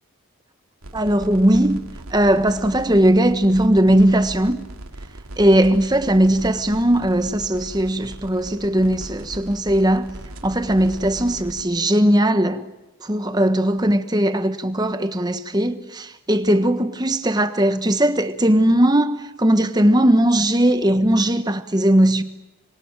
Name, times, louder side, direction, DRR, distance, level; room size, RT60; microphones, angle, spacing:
sound 1, 0.8-11.7, right 1 dB, 80° right, 2.5 m, -38 dB
voice 1, 0.9-1.8 2.1-4.6 5.4-10.1 10.4-12.6 13.0-22.2, right 1 dB, 20° right, 1.3 m, -18 dB
27.0 x 22.5 x 9.0 m
head